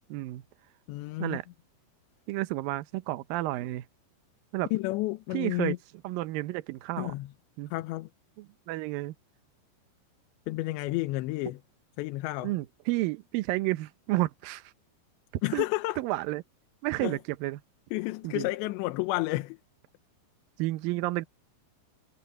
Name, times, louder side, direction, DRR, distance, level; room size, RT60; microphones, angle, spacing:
voice 1, 0.1-0.4 1.2-1.5 2.3-3.9 4.5-4.7 5.3-5.8 6.0-7.1 7.6-7.7 8.4-9.1 12.4-14.6 15.5-15.6 16.0-16.4 16.8-17.6 18.2-18.5 20.6-21.3, right 18 dB, 80° right, 2.1 m, -31 dB
voice 2, 0.9-1.4 4.7-5.8 7.0-7.3 7.7-8.1 10.5-11.6 12.0-12.5 15.4-16.0 17.0-17.2 17.9-19.6, left 19 dB, 85° left, 3.1 m, -31 dB
omnidirectional pair, 5.1 m